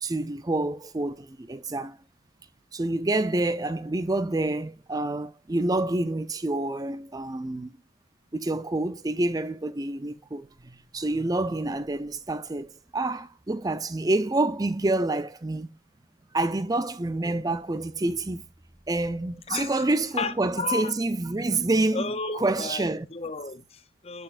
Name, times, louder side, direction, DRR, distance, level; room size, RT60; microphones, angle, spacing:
voice 1, 0.0-2.0 2.7-7.7 8.3-15.8 16.3-18.5 18.9-23.1, right 2 dB, 20° right, 0.4 m, -28 dB
voice 2, 19.5-19.9 20.2-21.0 21.9-24.2, left 4 dB, 30° left, 0.6 m, -33 dB
10.0 x 6.0 x 2.5 m
head